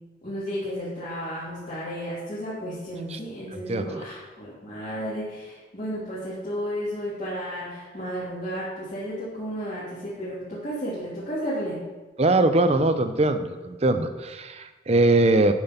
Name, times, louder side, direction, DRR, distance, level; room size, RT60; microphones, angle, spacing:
voice 1, 0.2-11.8, equal, 40° left, -11 dB, 2.5 m, -33 dB
voice 2, 3.5-4.0 12.2-15.5, right 2 dB, 35° right, 9 dB, 0.6 m, -22 dB
8.8 x 6.1 x 5.7 m, 1.2 s
head